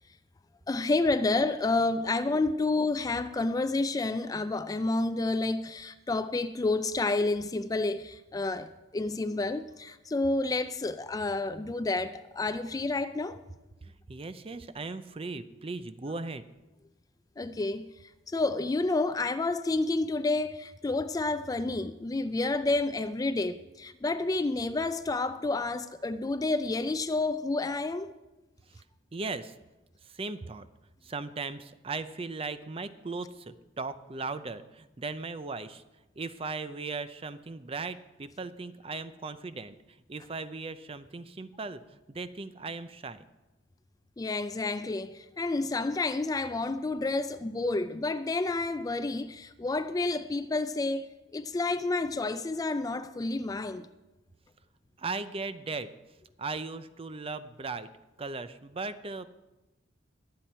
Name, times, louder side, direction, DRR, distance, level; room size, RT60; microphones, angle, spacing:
voice 1, 0.7-13.4 17.4-17.9 18.3-28.1 44.2-53.9, left 2 dB, 20° left, 0.3 m, -29 dB
voice 2, 13.8-16.4 28.7-28.8 29.1-29.5 30.0-30.7 31.0-35.8 36.2-39.7 40.1-43.2 55.0-55.9 56.4-57.9 58.2-59.3, right 3 dB, 30° right, 0.5 m, -37 dB
21.5 x 7.7 x 4.4 m
head